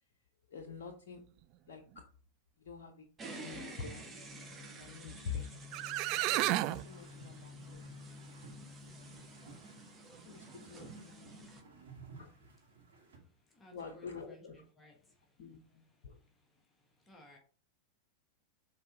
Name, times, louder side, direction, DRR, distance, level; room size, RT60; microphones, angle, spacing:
voice 1, 0.5-1.2 1.7-1.8 2.6-4.1 4.6-7.9 10.2-11.8 12.2-12.3 13.7-14.6 15.4-16.2, left 6 dB, 55° left, 5 dB, 0.8 m, -47 dB
sound 1, 3.2-11.6, equal, 20° right, 1.3 m, -50 dB
sound 2, 5.4-5.5 5.7-6.8, right 15 dB, 40° right, 0.3 m, -31 dB
sound 3, 6.5-13.2, right 4 dB, 65° right, 2.1 m, -56 dB
voice 2, 13.5-15.0 17.1-17.4, left 1 dB, 15° left, 1 dB, 1.4 m, -59 dB
6.5 x 4.1 x 3.8 m, 0.40 s
figure-of-eight pair, 90°, 0 cm